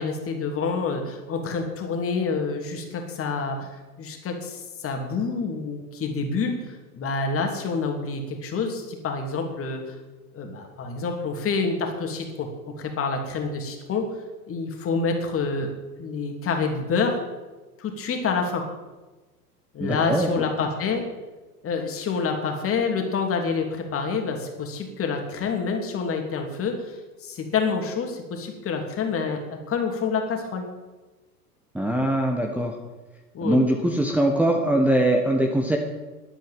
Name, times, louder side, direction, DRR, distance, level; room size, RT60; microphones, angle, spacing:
voice 1, 0.0-3.7 4.0-10.0 10.3-14.1 14.5-15.7 16.0-17.2 17.8-18.7 19.7-21.1 21.6-29.4 29.7-30.6 33.3-33.6, left 4 dB, 30° left, 3 dB, 2.9 m, -27 dB
voice 2, 19.8-20.5 31.7-32.7 33.4-35.8, right 1 dB, 5° right, 2 dB, 1.4 m, -22 dB
11.5 x 8.9 x 9.3 m, 1.2 s
figure-of-eight pair, 90°, 46 cm